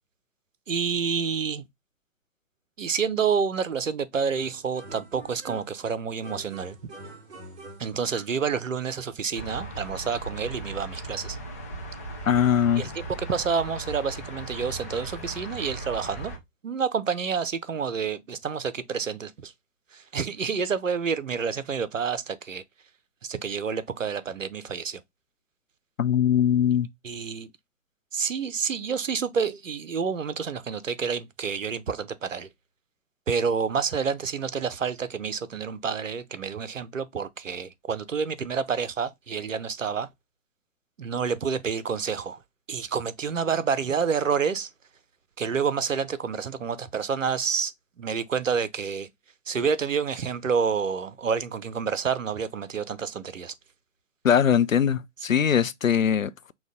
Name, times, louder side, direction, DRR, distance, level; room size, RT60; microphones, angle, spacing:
voice 1, 0.7-1.6 2.8-6.8 7.8-11.4 12.8-12.9 13.3-16.3 16.6-19.5 19.9-22.6 23.2-25.0 27.0-27.5 28.1-32.5 33.3-40.1 41.0-42.4 42.7-44.7 45.4-47.7 48.0-49.1 49.5-53.5, right 6 dB, 75° right, 0.7 m, -28 dB
sound 1, 4.4-5.9 6.2-8.4, right 2 dB, 45° right, 3.2 m, -45 dB
sound 2, 9.3-16.4, right 1 dB, 15° left, 0.4 m, -38 dB
voice 2, 12.3-12.8 26.0-26.9 54.2-56.5, left 8 dB, 85° left, 0.5 m, -21 dB
6.1 x 2.4 x 3.7 m
figure-of-eight pair, 120°, 39 cm